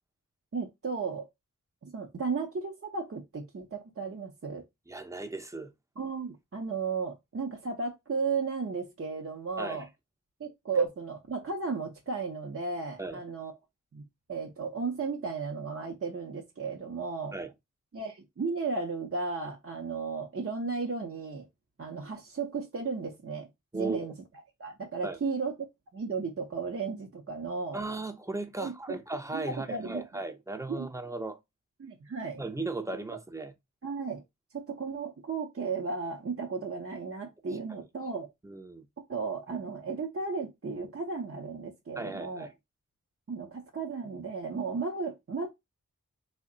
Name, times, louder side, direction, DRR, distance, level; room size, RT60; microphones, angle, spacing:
voice 1, 0.5-1.3 1.8-4.6 6.0-9.9 10.4-13.5 13.9-14.0 14.3-17.4 17.9-21.5 21.8-23.5 23.7-24.1 24.6-25.5 25.9-27.8 28.6-29.0 29.3-30.0 30.7-30.9 31.8-32.4 33.8-34.2 34.5-38.3 39.1-42.5 43.3-45.5, right 4 dB, 45° right, 0.7 m, -34 dB
voice 2, 4.9-5.7 9.6-9.8 13.0-13.2 17.3-17.5 23.7-24.1 25.0-25.2 27.7-31.4 32.4-33.5 38.4-38.9 42.0-42.5, right 3 dB, 10° right, 0.6 m, -36 dB
3.3 x 2.2 x 3.8 m
cardioid pair, 45°, 31 cm